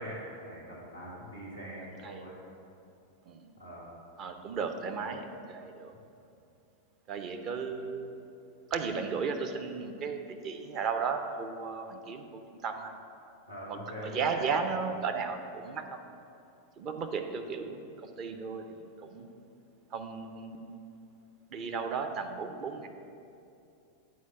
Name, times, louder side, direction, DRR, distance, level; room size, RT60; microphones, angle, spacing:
voice 1, 0.0-2.4 3.6-3.9 5.0-5.1 5.9-6.0 13.5-14.4, equal, 85° right, -6 dB, 1.6 m, -42 dB
voice 2, 4.2-5.9 7.1-8.2 8.7-13.0 13.7-16.0 16.8-19.3 19.9-20.7 21.5-22.9, right 5 dB, 35° right, 6 dB, 0.7 m, -35 dB
8.4 x 4.7 x 7.0 m, 2.7 s
figure-of-eight pair, 90°, 0 cm